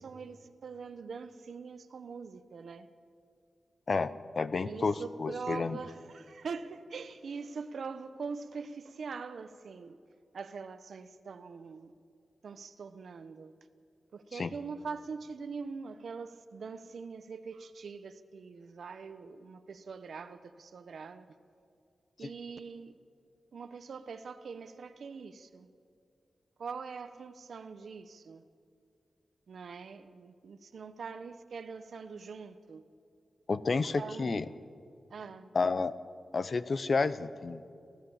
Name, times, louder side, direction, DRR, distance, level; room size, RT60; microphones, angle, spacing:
voice 1, 0.0-2.9 4.6-10.0 10.3-11.9 12.4-13.5 14.1-21.3 22.2-22.9 23.5-25.7 26.6-28.4 29.5-32.8 33.8-34.5 35.1-35.5, right 5 dB, 70° right, 0.9 m, -43 dB
voice 2, 3.9-5.8 14.4-14.5 22.2-22.3 33.5-34.4 35.5-35.9 36.3-37.6, left 4 dB, 45° left, 0.7 m, -30 dB
28.0 x 15.5 x 7.2 m
wide cardioid pair, 160°, 0 cm